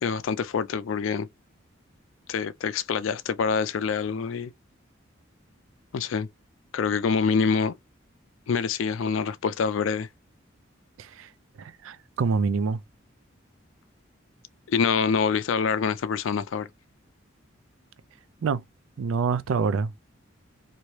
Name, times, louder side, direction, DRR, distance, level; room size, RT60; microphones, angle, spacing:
voice 1, 0.0-1.3 2.3-4.5 5.9-6.3 6.7-7.7 8.5-10.1 14.7-16.7, left 5 dB, 80° left, 0.4 m, -26 dB
voice 2, 11.0-11.3 11.6-12.8 18.4-18.6 19.0-20.1, right 5 dB, 85° right, 0.4 m, -26 dB
3.1 x 2.6 x 2.9 m
head